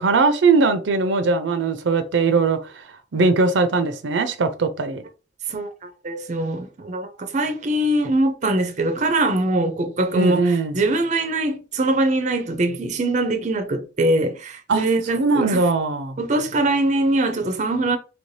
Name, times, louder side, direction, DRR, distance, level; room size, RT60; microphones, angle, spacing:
voice 1, 0.0-2.8 3.1-5.0 10.1-10.8 14.7-14.8 15.1-16.2, right 4 dB, 90° right, 0.5 m, -20 dB
voice 2, 5.5-15.6 16.2-18.0, right 2 dB, 40° right, 0.5 m, -22 dB
2.9 x 2.7 x 3.2 m
head